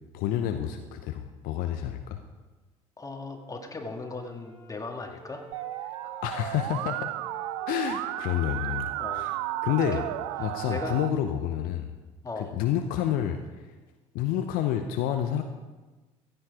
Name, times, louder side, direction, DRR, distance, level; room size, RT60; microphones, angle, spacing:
voice 1, 0.1-2.2 6.2-7.1 7.7-9.3 9.6-10.0 10.4-12.0 12.4-13.7 14.1-15.4, left 10 dB, 60° left, 7 dB, 0.8 m, -29 dB
voice 2, 3.0-5.4 6.0-6.3 9.0-9.3 9.6-10.1 10.7-11.0 12.2-12.5, left 3 dB, 20° left, 3 dB, 2.1 m, -38 dB
Wind instrument woodwind instrument, 3.3-6.2 6.4-9.7, equal, 30° right, 3.0 m, -50 dB
Musical instrument, 5.5-11.1, right 16 dB, 65° right, 0.5 m, -33 dB
15.5 x 9.2 x 4.9 m, 1.2 s
figure-of-eight pair, 55°, 17 cm